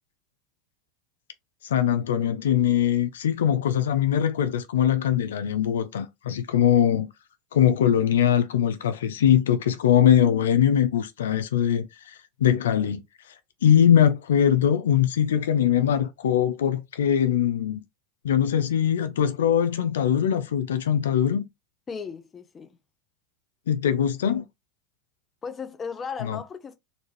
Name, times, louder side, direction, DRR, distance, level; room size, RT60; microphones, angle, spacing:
voice 1, 1.6-7.1 7.5-13.0 13.6-17.8 18.2-21.4 23.7-24.4 26.2-26.4, left 9 dB, 85° left, 0.5 m, -22 dB
voice 2, 21.9-22.8 25.4-26.8, left 6 dB, 25° left, 0.7 m, -36 dB
3.9 x 2.5 x 3.1 m
hypercardioid pair, 95°, 0 cm